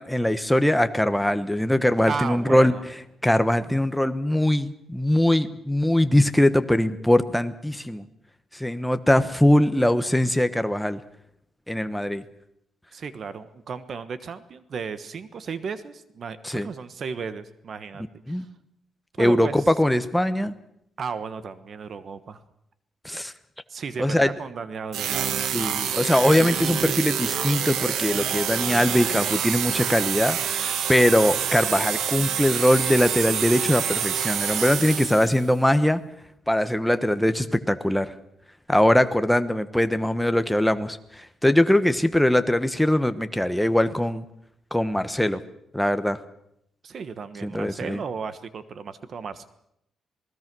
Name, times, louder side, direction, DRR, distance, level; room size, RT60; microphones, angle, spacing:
voice 1, 0.0-2.7 3.2-8.1 8.5-11.0 11.7-12.2 16.4-16.7 18.3-18.5 19.2-20.5 23.0-23.3 24.0-24.3 25.5-36.0 36.5-38.1 38.7-44.2 44.7-45.4 45.7-46.2 47.4-48.0, left 1 dB, 5° left, 10 dB, 1.1 m, -21 dB
voice 2, 2.1-2.8 12.9-18.5 19.2-19.6 21.0-22.4 23.7-25.5 46.8-49.4, right 5 dB, 45° right, 13 dB, 1.3 m, -34 dB
sound 1, 24.9-35.5, right 8 dB, 85° right, 1.6 m, -27 dB
sound 2, 26.4-34.3, right 6 dB, 65° right, 1.6 m, -42 dB
27.5 x 19.5 x 6.2 m, 0.78 s
cardioid pair, 145°, 0 cm